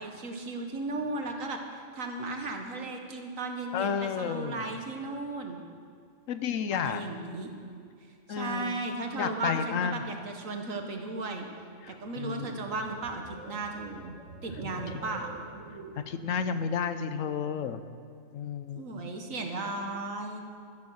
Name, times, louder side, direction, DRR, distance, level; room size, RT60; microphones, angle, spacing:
voice 1, 0.0-5.6 6.7-7.5 8.3-11.5 11.9-14.2 14.4-15.4 18.8-20.4, right 2 dB, 85° right, 3 dB, 1.8 m, -35 dB
voice 2, 3.7-4.6 6.3-7.0 8.3-8.8 9.2-10.0 11.8-12.6 16.0-17.8 18.3-19.1, left 7 dB, 75° left, 11 dB, 1.1 m, -32 dB
sound 1, 11.9-16.7, right 2 dB, 70° right, 2.0 m, -46 dB
13.5 x 11.0 x 6.5 m, 2.3 s
omnidirectional pair, 1.4 m